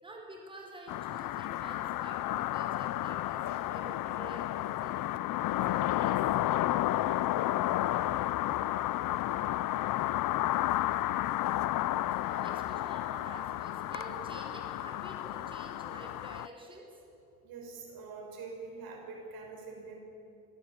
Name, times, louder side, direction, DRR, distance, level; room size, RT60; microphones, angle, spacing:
voice 1, 0.0-5.0 5.7-6.2 8.3-8.5 12.1-16.9, right 2 dB, 15° right, 0 dB, 4.5 m, -49 dB
sound 1, 0.9-16.5, left 14 dB, 70° left, 0.6 m, -32 dB
voice 2, 17.4-20.0, right 4 dB, 80° right, 1 dB, 5.5 m, -45 dB
25.0 x 16.5 x 8.8 m, 2.8 s
cardioid pair, 145°, 35 cm